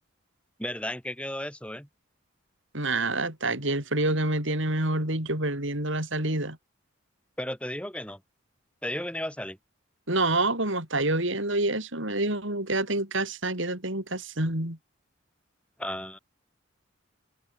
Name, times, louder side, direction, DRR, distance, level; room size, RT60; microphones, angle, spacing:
voice 1, 0.6-1.9 7.4-8.2 8.8-9.6 15.8-16.2, left 1 dB, 5° left, 6.8 m, -34 dB
voice 2, 2.7-6.6 10.1-14.8, right 2 dB, 70° right, 6.6 m, -27 dB
head